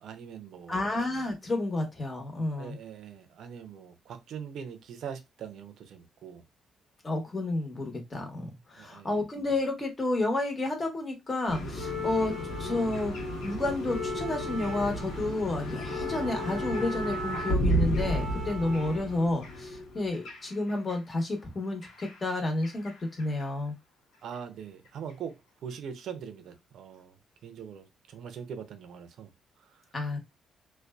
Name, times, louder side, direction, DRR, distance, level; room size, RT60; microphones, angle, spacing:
voice 1, 0.0-0.9 2.6-6.4 8.8-9.2 24.2-29.3 29.6-29.8, right 7 dB, 70° right, 0.5 m, -42 dB
voice 2, 0.7-2.8 7.0-12.3 12.6-13.1 13.4-23.7 29.9-30.2, left 2 dB, 30° left, 1.0 m, -30 dB
sound 1, 11.5-20.9 21.8-22.9 23.2-23.4 24.3-24.4, equal, 85° left, 0.9 m, -32 dB
2.5 x 2.2 x 2.2 m
cardioid pair, 90°, 0 cm